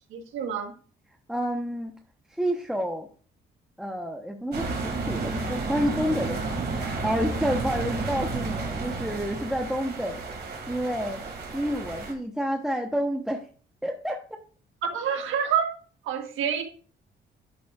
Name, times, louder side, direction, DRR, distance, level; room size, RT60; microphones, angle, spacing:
voice 1, 0.1-0.7 14.8-15.7 16.0-16.6, right 7 dB, 85° right, 5 dB, 1.4 m, -27 dB
voice 2, 1.3-1.9 2.4-3.1 3.8-6.4 6.7-10.2 10.7-11.2 11.5-13.5 13.8-14.2, equal, 5° right, 2 dB, 1.1 m, -29 dB
sound 1, 4.5-12.1, right 3 dB, 55° right, 2.9 m, -32 dB
11.5 x 6.8 x 2.5 m, 0.40 s
cardioid pair, 90°, 20 cm